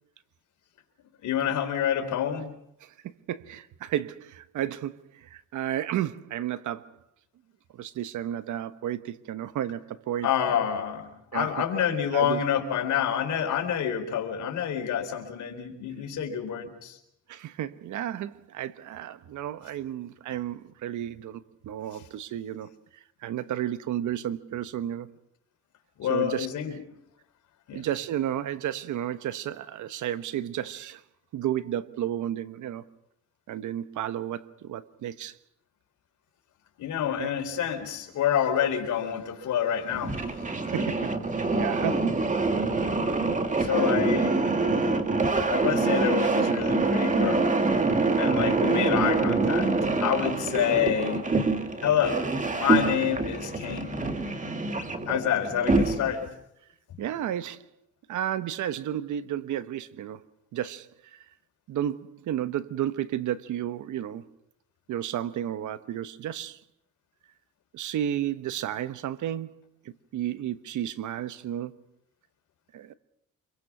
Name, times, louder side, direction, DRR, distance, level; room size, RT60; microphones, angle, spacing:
voice 1, 1.2-2.5 10.2-17.0 26.0-26.7 27.7-27.8 36.8-40.6 43.6-44.4 45.5-47.6 48.2-49.7 50.0-51.3 51.8-52.3 52.5-54.2 55.1-56.2, left 9 dB, 75° left, 4.1 m, -28 dB
voice 2, 2.8-7.0 7.7-10.6 11.3-11.6 12.1-12.4 17.3-25.1 26.1-26.8 27.7-31.0 31.3-32.9 33.5-35.4 37.2-37.3 40.7-41.2 41.6-42.3 57.0-57.7 58.1-60.3 60.5-61.3 61.7-64.3 64.9-66.6 67.7-71.8 72.7-72.9, right 11 dB, 75° right, 1.1 m, -32 dB
sound 1, 39.9-56.3, right 3 dB, 25° right, 2.2 m, -25 dB
26.5 x 22.5 x 6.1 m
cardioid pair, 90°, 30 cm